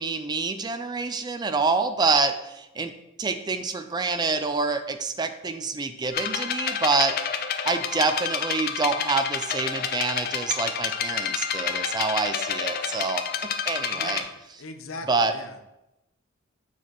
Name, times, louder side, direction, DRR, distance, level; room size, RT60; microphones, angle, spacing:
voice 1, 0.0-2.9 3.2-7.2 7.6-13.2 13.7-14.2 15.1-15.3, right 4 dB, 20° right, 9 dB, 0.4 m, -26 dB
sound 1, 6.1-14.2, left 7 dB, 50° left, 0.5 m, -29 dB
voice 2, 13.9-14.3 14.6-15.6, left 2 dB, 85° left, 7 dB, 0.7 m, -40 dB
7.1 x 6.3 x 3.0 m, 0.92 s
head